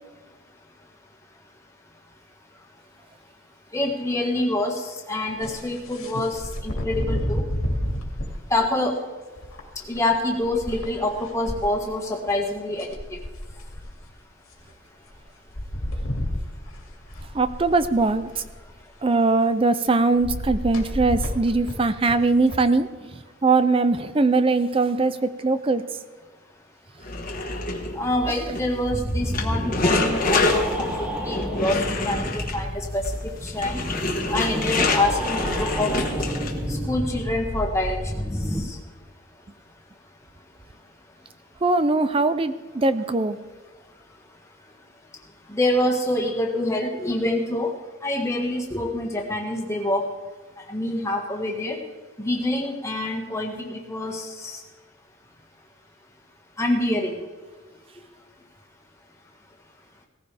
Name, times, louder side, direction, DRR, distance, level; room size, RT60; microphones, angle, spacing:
voice 1, 3.7-7.4 8.5-9.0 9.9-13.0 27.9-31.8 32.0-32.3 32.5-33.0 33.4-33.8 34.3-35.9 36.7-38.0 38.5-38.8 45.5-47.7 48.0-50.0 50.7-51.8 52.2-54.6 56.6-57.2, left 1 dB, 15° left, 0 dB, 1.6 m, -26 dB
sound 1, 5.4-8.4 9.4-11.6 12.3-12.4 12.6-14.0 15.1-15.2 15.5-18.7 20.2-22.6, equal, 90° left, 2.4 m, -30 dB
voice 2, 17.3-18.4 19.0-22.9 23.4-25.8 41.6-43.4, right 3 dB, 25° right, 13 dB, 0.5 m, -21 dB
sound 2, 27.0-36.8, left 2 dB, 40° left, 1.4 m, -27 dB
sound 3, 28.9-38.6, equal, 5° right, 1.7 m, -30 dB
18.0 x 14.5 x 3.4 m, 1.3 s
head